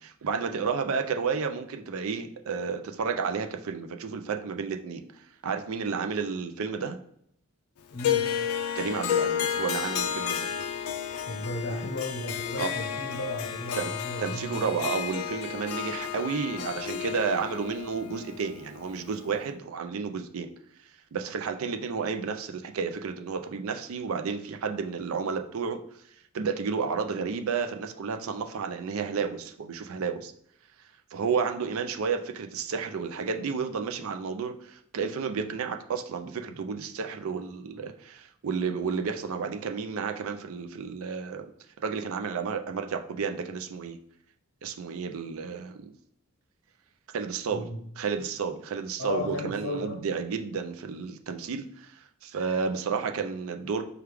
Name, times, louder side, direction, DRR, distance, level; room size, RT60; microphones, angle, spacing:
voice 1, 0.0-5.0 5.4-7.0 8.7-10.5 12.6-12.7 13.7-13.9 14.2-20.5 21.1-25.8 26.3-30.3 31.1-41.5 41.8-44.0 44.6-45.9 47.1-47.7 48.0-53.8, right 5 dB, 70° right, 6 dB, 0.4 m, -31 dB
voice 2, 7.9-8.3 11.3-14.6 47.5-47.8 49.0-50.0, left 1 dB, 60° left, -2 dB, 0.8 m, -34 dB
Harp, 8.0-19.3, left 9 dB, 80° left, 0.4 m, -32 dB
4.7 x 2.3 x 3.3 m, 0.71 s
head